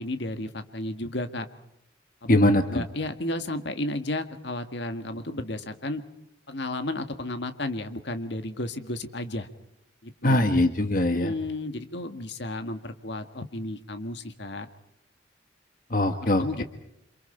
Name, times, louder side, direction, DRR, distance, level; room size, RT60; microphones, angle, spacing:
voice 1, 0.0-1.5 2.2-2.4 2.7-6.0 6.5-9.5 10.0-10.4 11.1-14.7 16.2-16.6, left 1 dB, 65° left, 8 dB, 1.8 m, -33 dB
voice 2, 2.3-2.8 10.2-11.3 15.9-16.6, left 1 dB, 45° left, 7 dB, 1.4 m, -22 dB
29.0 x 27.0 x 4.5 m, 0.81 s
head